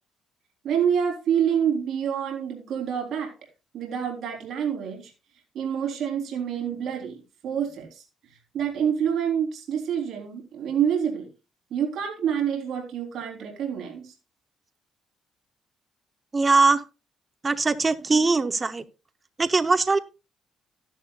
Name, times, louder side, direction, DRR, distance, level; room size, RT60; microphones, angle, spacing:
voice 1, 0.6-3.3 3.7-5.1 5.5-7.2 7.4-8.0 8.5-11.3 11.7-14.1, right 8 dB, 65° right, 1 dB, 3.6 m, -27 dB
voice 2, 16.3-16.8 17.4-18.8 19.4-20.0, right 3 dB, 25° right, 12 dB, 0.8 m, -21 dB
13.0 x 11.0 x 2.4 m, 0.29 s
cardioid pair, 110°, 0 cm